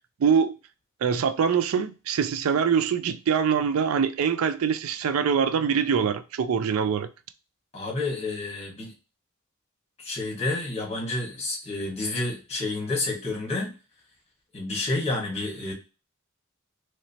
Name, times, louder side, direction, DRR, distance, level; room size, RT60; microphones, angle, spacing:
voice 1, 0.2-0.5 1.0-7.1, right 7 dB, 80° right, 0.4 m, -24 dB
voice 2, 7.7-8.9 10.0-13.7 14.5-15.7, left 2 dB, 30° left, 1.3 m, -29 dB
3.2 x 3.0 x 2.7 m
head